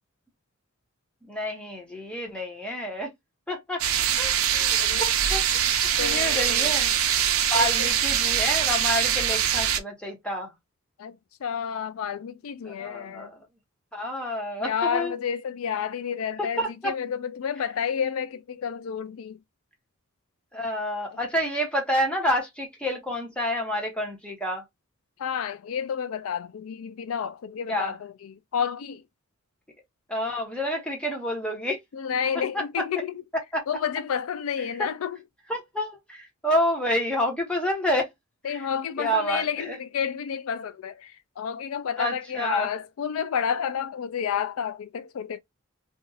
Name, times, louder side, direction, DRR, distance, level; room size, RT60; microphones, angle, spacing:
voice 1, 1.2-3.1 3.5-3.8 4.2-6.9 7.5-10.5 12.6-13.4 13.9-15.1 16.4-16.9 20.5-24.6 27.7-27.9 30.1-31.8 32.5-32.6 33.5-33.6 35.5-38.1 38.5-38.7 39.0-39.8 42.0-42.7, equal, 5° left, 1.1 m, -29 dB
sound 1, 3.8-9.8, right 9 dB, 90° right, 0.6 m, -23 dB
voice 2, 6.0-6.7 7.5-7.9 11.0-13.3 14.6-19.4 21.1-21.2 25.2-29.0 31.9-33.2 33.7-35.2 38.4-45.4, left 7 dB, 80° left, 0.4 m, -30 dB
2.6 x 2.4 x 3.9 m
head